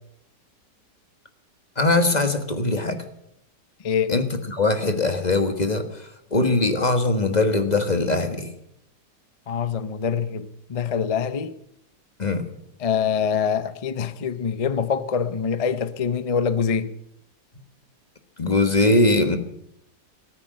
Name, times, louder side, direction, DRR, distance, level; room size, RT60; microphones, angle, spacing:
voice 1, 1.8-3.0 4.1-6.0 6.3-8.5 12.2-12.5 18.4-19.4, left 2 dB, 25° left, 1.3 m, -21 dB
voice 2, 3.8-4.2 9.5-11.6 12.8-16.9, left 7 dB, 60° left, 0.3 m, -25 dB
14.0 x 13.5 x 7.6 m
omnidirectional pair, 1.9 m